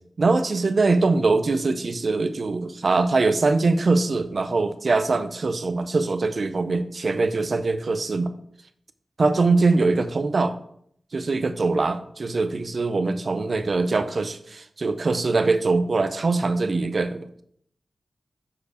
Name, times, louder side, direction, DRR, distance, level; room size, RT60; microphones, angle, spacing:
voice 1, 0.2-8.3 9.2-10.6 11.1-17.3, right 3 dB, 50° right, 11 dB, 0.5 m, -22 dB
6.9 x 4.7 x 4.8 m, 0.68 s
wide cardioid pair, 130°, 0 cm